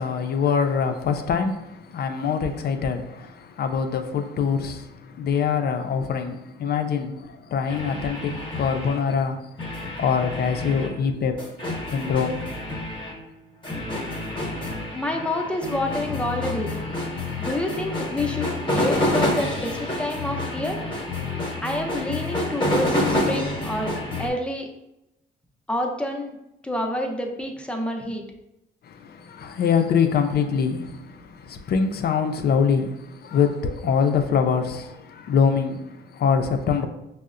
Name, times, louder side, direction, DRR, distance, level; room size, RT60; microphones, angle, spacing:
voice 1, 0.0-9.4 10.0-11.4 11.9-12.4 28.8-36.9, left 6 dB, 55° left, 0.4 m, -24 dB
sound 1, 7.7-9.2 9.6-24.3, left 1 dB, 25° left, 0.9 m, -28 dB
voice 2, 14.9-16.8 17.4-20.8 21.6-24.7 25.7-26.4 26.6-28.2, left 1 dB, 5° left, 0.5 m, -28 dB
5.4 x 2.0 x 2.5 m
cardioid pair, 90°, 20 cm